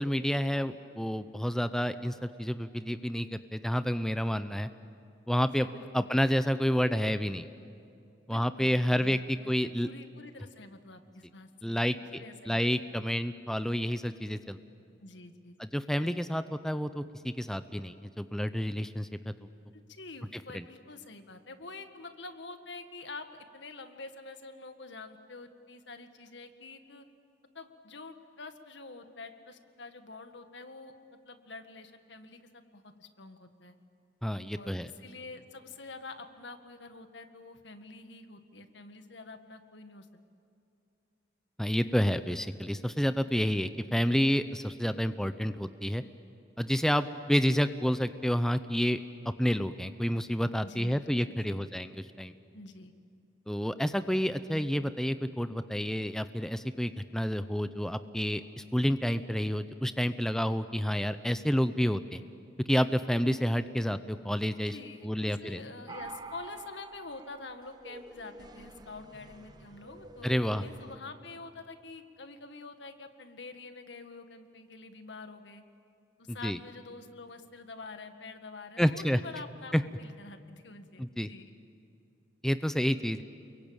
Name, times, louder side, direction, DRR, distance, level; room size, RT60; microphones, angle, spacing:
voice 1, 0.0-4.7 5.3-5.7 5.9-7.5 8.3-9.9 11.6-12.0 12.5-14.6 15.6-19.1 20.5-20.6 34.2-34.9 41.6-46.0 46.6-49.0 49.4-52.3 53.5-62.2 62.7-64.8 65.0-65.6 70.2-70.6 76.3-76.6 78.8-79.2 79.7-79.8 81.0-81.3 82.4-83.2, equal, 5° left, 11 dB, 0.6 m, -29 dB
voice 2, 5.4-6.1 8.3-12.6 15.0-15.6 19.7-27.1 27.5-33.8 34.5-40.2 50.6-51.7 52.5-52.9 64.6-75.6 76.2-79.7 80.0-81.5, left 3 dB, 80° left, 7 dB, 1.8 m, -47 dB
sound 1, 65.9-71.0, right 3 dB, 20° right, 1.0 m, -48 dB
28.5 x 22.5 x 8.9 m, 2.6 s
head